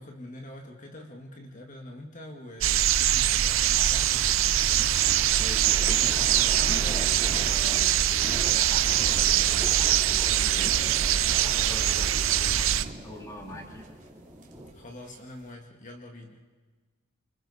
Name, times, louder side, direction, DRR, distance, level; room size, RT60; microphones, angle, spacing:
voice 1, 0.0-4.6 14.7-16.4, left 1 dB, 40° left, 1 dB, 2.0 m, -44 dB
sound 1, 2.6-12.8, right 11 dB, 70° right, 0.6 m, -23 dB
sound 2, 3.9-14.7, right 1 dB, 10° right, 3.4 m, -42 dB
voice 2, 5.0-13.8, equal, 15° left, 0 dB, 3.4 m, -43 dB
sound 3, 7.3-15.5, right 1 dB, 35° right, 2.9 m, -49 dB
29.0 x 26.5 x 4.2 m, 1.3 s
head